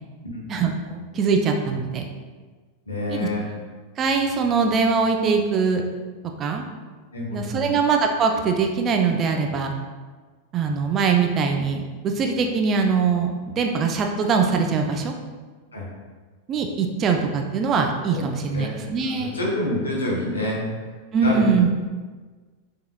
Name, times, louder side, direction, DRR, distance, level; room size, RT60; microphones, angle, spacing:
voice 1, 0.5-2.0 3.1-3.3 4.0-5.8 6.4-6.7 7.3-9.7 10.5-15.1 16.5-19.4 21.1-21.7, right 5 dB, 30° right, 3 dB, 0.4 m, -22 dB
voice 2, 2.9-3.4 7.1-7.7 15.7-15.9 18.1-18.2 18.5-18.8 19.2-20.6 21.2-21.4, left 1 dB, 70° left, -4 dB, 1.3 m, -27 dB
6.9 x 2.9 x 2.3 m, 1.4 s
figure-of-eight pair, 90°, 0 cm